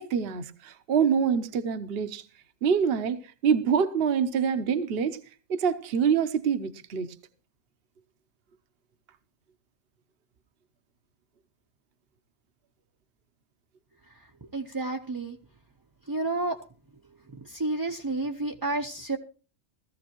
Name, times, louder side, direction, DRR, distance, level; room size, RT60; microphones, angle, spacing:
voice 1, 0.0-2.2 2.6-5.2 5.5-7.1, right 7 dB, 55° right, 1.0 m, -25 dB
voice 2, 14.5-15.4 16.1-16.6 17.5-19.2, right 2 dB, 20° right, 0.6 m, -30 dB
17.5 x 14.0 x 3.0 m
omnidirectional pair, 1.3 m